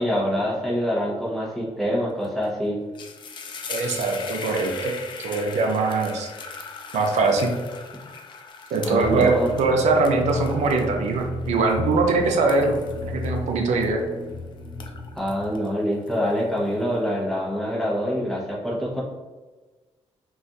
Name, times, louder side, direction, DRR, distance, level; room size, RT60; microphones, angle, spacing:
voice 1, 0.0-2.8 8.8-9.5 15.2-19.0, equal, ahead, -4 dB, 0.8 m, -25 dB
sound 1, 2.2-2.5 2.8-14.3 14.7-16.6, left 5 dB, 45° left, 0.4 m, -39 dB
voice 2, 3.7-4.9 5.2-6.3 6.9-7.5 8.7-12.7 13.0-14.0, right 3 dB, 80° right, 2 dB, 0.5 m, -22 dB
sound 2, 9.0-15.6, left 2 dB, 50° right, 0.8 m, -33 dB
2.4 x 2.3 x 3.9 m, 1.3 s
cardioid pair, 130°, 12 cm